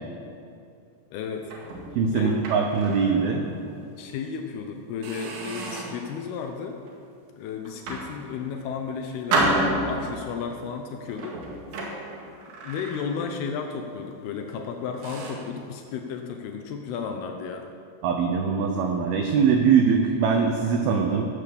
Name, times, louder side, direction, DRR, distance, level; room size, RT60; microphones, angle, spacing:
voice 1, 1.1-1.5 2.1-2.4 4.0-6.8 7.3-9.5 9.8-11.4 12.6-17.7, left 6 dB, 85° left, 4 dB, 2.2 m, -33 dB
sound 1, 1.4-3.2 3.7-3.8 4.4-4.6 5.0-6.1 6.6-7.0 7.6-8.7 9.3-10.3 11.1-13.4 13.7-14.0 14.6-14.7 15.0-15.5, right 2 dB, 70° right, 4.1 m, -30 dB
voice 2, 2.0-3.5 18.0-21.3, right 6 dB, 85° right, 3 dB, 2.1 m, -22 dB
16.5 x 7.5 x 6.8 m, 2.5 s
omnidirectional pair, 5.6 m